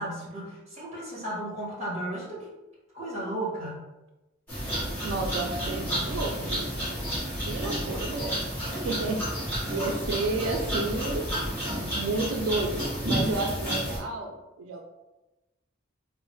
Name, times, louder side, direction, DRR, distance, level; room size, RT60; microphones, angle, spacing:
voice 1, 0.0-2.5 2.9-3.9, right 1 dB, 35° right, -5 dB, 1.3 m, -34 dB
sound 1, 4.5-14.0, equal, 10° left, 1.3 m, -31 dB
voice 2, 5.0-6.7 7.4-9.2 9.7-11.2 11.9-14.8, right 3 dB, 90° right, 3 dB, 0.4 m, -31 dB
3.8 x 2.0 x 3.1 m, 1.0 s
head